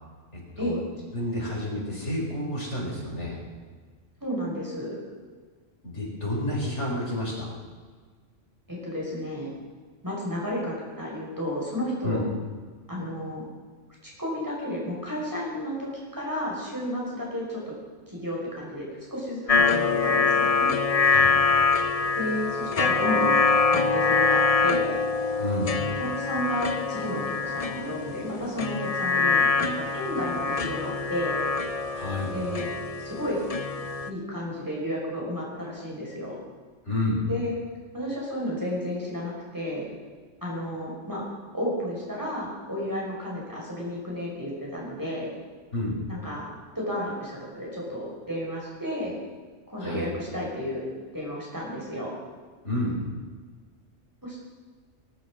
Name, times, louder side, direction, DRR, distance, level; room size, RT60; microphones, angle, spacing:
voice 1, 0.3-0.8 1.1-3.4 5.8-7.5 12.0-12.2 21.0-21.3 25.4-25.8 31.9-32.3 36.8-37.2 45.7-46.0 49.8-50.1 52.6-53.0, left 1 dB, 65° left, -3 dB, 5.0 m, -30 dB
voice 2, 4.2-5.0 8.7-9.5 10.0-12.2 12.9-13.4 14.0-17.7 18.1-20.7 22.2-23.4 23.7-24.9 26.0-31.4 32.3-32.7 33.0-33.4 34.1-36.4 37.3-37.5 37.9-39.9 40.4-41.2 41.5-45.3 46.1-46.5 46.7-49.2 49.7-52.1 54.2-54.5, equal, 15° right, -4 dB, 5.5 m, -32 dB
sound 1, 19.5-34.1, left 4 dB, 35° left, 0.7 m, -24 dB
20.5 x 11.0 x 6.3 m, 1.5 s
omnidirectional pair, 1.3 m